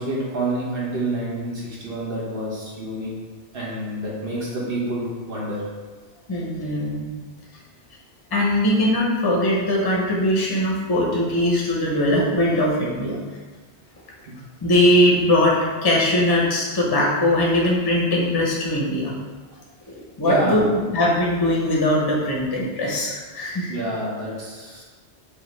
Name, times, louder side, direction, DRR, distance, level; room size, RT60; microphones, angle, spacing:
voice 1, 0.0-3.1 3.5-5.6 20.2-20.7 23.7-24.8, right 1 dB, 60° right, -5 dB, 1.2 m, -28 dB
voice 2, 6.3-7.1 8.3-13.2 14.6-19.2 19.9-20.6 20.9-23.7, left 1 dB, 25° left, -3 dB, 0.7 m, -20 dB
5.1 x 2.4 x 3.2 m, 1.4 s
omnidirectional pair, 1.1 m